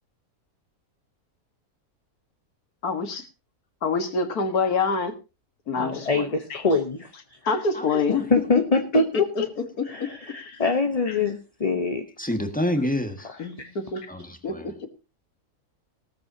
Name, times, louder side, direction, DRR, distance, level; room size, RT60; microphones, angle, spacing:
voice 1, 2.8-3.3 3.8-5.1 5.7-6.6 7.5-8.3 8.9-9.0 9.4-9.5 9.8-10.6 11.1-11.2 13.4-14.0 14.4-14.9, left 4 dB, 75° left, 2.1 m, -27 dB
voice 2, 5.8-7.1 8.3-9.5 9.8-12.1 13.6-13.7, left 3 dB, 25° left, 1.0 m, -24 dB
voice 3, 7.7-8.5 12.2-13.3 14.1-14.8, left 1 dB, 5° left, 1.6 m, -29 dB
18.0 x 13.5 x 2.8 m
omnidirectional pair, 1.6 m